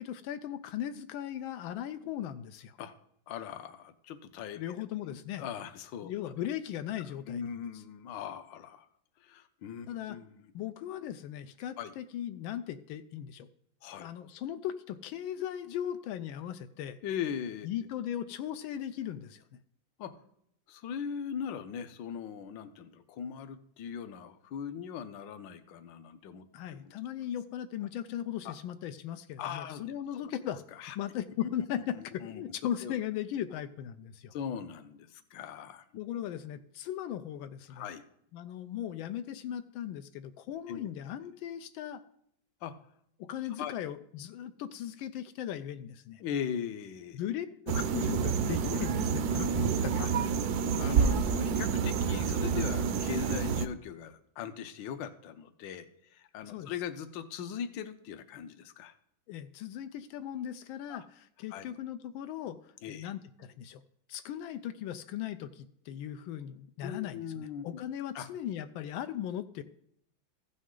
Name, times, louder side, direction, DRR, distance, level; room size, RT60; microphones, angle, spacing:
voice 1, 0.0-2.8 4.6-5.4 6.0-7.8 9.9-10.2 10.5-13.5 13.9-17.0 17.6-19.4 26.5-30.6 30.9-34.3 36.0-37.9 38.3-42.0 43.2-46.2 47.1-50.1 56.5-56.7 59.3-63.8 64.1-69.6, left 10 dB, 90° left, 9 dB, 1.4 m, -38 dB
voice 2, 3.3-4.6 5.0-6.1 7.3-8.9 9.2-10.4 11.8-11.9 13.8-14.1 17.0-17.7 20.0-20.2 20.7-26.4 26.7-26.8 28.4-28.5 29.4-29.8 30.1-30.2 30.8-30.9 31.9-32.4 32.8-32.9 34.3-35.8 37.7-38.0 40.7-40.9 42.6-42.8 43.6-43.7 46.2-47.2 50.0-50.1 50.8-58.9 60.9-61.0 61.5-61.6 62.8-63.1 66.8-67.6 68.1-68.3, left 8 dB, 75° left, 9 dB, 1.4 m, -40 dB
sound 1, 47.7-53.7, right 6 dB, 70° right, 0.9 m, -28 dB
14.5 x 6.3 x 3.7 m, 0.72 s
omnidirectional pair, 2.1 m